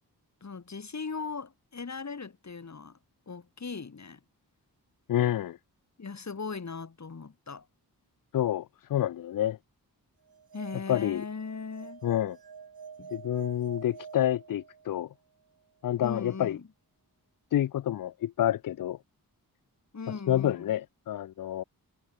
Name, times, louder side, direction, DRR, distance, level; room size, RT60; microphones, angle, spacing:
voice 1, 0.4-3.0 3.3-4.2 6.0-7.7 10.5-12.0 13.0-13.1 16.0-16.7 19.9-20.8, left 5 dB, 45° left, 5.9 m, -39 dB
voice 2, 5.1-5.6 8.3-9.6 10.9-11.2 12.0-12.4 13.1-15.1 15.8-16.6 17.5-19.0 20.3-21.6, left 12 dB, 60° left, 0.4 m, -28 dB
sound 1, 10.3-15.1, right 6 dB, 70° right, 4.8 m, -47 dB
wide cardioid pair, 155°, 37 cm